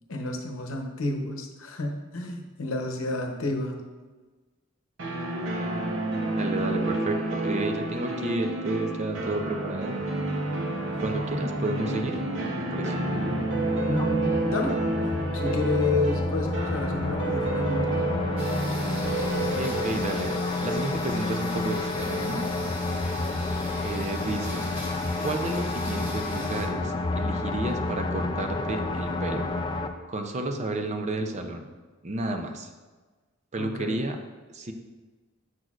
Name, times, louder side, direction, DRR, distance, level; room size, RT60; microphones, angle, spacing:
voice 1, 0.1-3.8 13.8-14.7 15.3-17.9 33.6-34.0, left 2 dB, 75° left, 3 dB, 0.8 m, -30 dB
sound 1, 5.0-21.7, right 2 dB, 65° right, 0.8 m, -30 dB
voice 2, 6.3-10.0 11.0-12.2 12.6-13.4 19.5-20.3 20.6-22.5 23.8-24.6 25.2-29.5 30.1-31.7 32.0-32.7 33.5-34.2 34.5-34.7, right 2 dB, 35° right, 5 dB, 0.5 m, -31 dB
sound 2, 10.9-29.9, left 2 dB, 20° left, 0.3 m, -30 dB
sound 3, 18.4-26.7, left 1 dB, 10° right, 1.7 m, -41 dB
7.6 x 6.1 x 2.4 m, 1.3 s
head